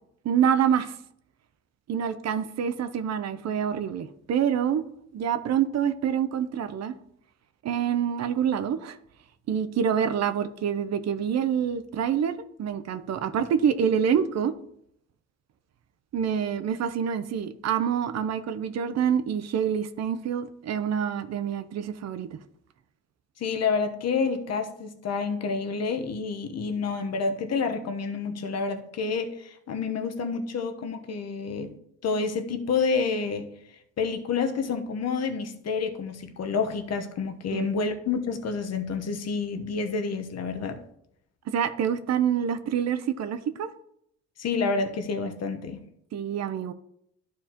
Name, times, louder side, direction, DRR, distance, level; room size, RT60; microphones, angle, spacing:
voice 1, 0.2-1.0 1.9-4.8 5.1-7.0 7.6-9.0 9.5-14.5 16.1-22.4 37.5-37.7 41.5-43.7 46.1-46.7, right 8 dB, 60° right, 12 dB, 0.7 m, -26 dB
voice 2, 23.4-31.7 32.0-33.5 34.0-40.8 44.4-45.8, left 5 dB, 60° left, 7 dB, 1.0 m, -29 dB
11.5 x 4.8 x 2.9 m, 0.73 s
cardioid pair, 90°, 30 cm